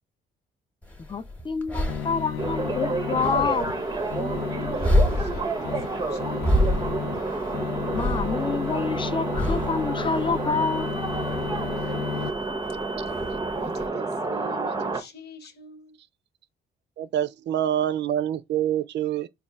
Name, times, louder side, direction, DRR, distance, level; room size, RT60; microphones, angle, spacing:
sound 1, 0.8-13.9, left 1 dB, 10° left, 1.0 m, -30 dB
voice 1, 1.1-3.7 7.9-10.9, left 5 dB, 25° left, 0.5 m, -27 dB
sound 2, 1.9-12.3, left 9 dB, 90° left, 0.4 m, -34 dB
sound 3, 2.4-15.0, right 3 dB, 20° right, 0.6 m, -30 dB
voice 2, 4.2-6.9 11.7-12.3 13.1-16.0, equal, 55° left, 0.9 m, -45 dB
voice 3, 17.0-19.3, right 11 dB, 60° right, 0.5 m, -26 dB
4.1 x 2.3 x 3.4 m
cardioid pair, 90°, 20 cm